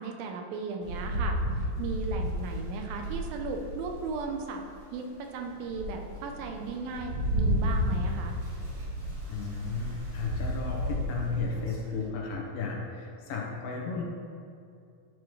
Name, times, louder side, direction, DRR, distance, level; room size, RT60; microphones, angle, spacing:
voice 1, 0.0-1.4 1.8-4.6 4.9-8.4, right 4 dB, 80° right, 3 dB, 2.6 m, -36 dB
Rain, 0.8-4.3 4.9-5.0 5.5-12.0, equal, 40° right, 2.7 m, -32 dB
voice 2, 9.3-14.0, left 4 dB, 75° left, -2 dB, 2.8 m, -34 dB
12.0 x 7.2 x 3.2 m, 2.5 s
omnidirectional pair, 4.1 m